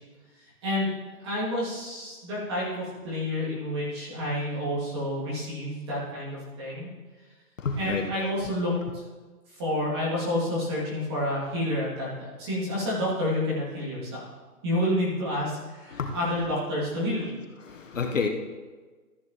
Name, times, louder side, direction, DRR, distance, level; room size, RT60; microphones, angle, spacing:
voice 1, 0.6-0.9 1.2-6.9 7.7-8.7 9.6-12.1 12.4-14.3 14.6-17.4, left 1 dB, 15° right, -7 dB, 2.5 m, -29 dB
voice 2, 7.6-8.0 15.9-16.2 17.7-18.3, left 5 dB, 55° left, 4 dB, 1.0 m, -29 dB
14.0 x 8.3 x 3.0 m, 1.4 s
hypercardioid pair, 175°, 45 cm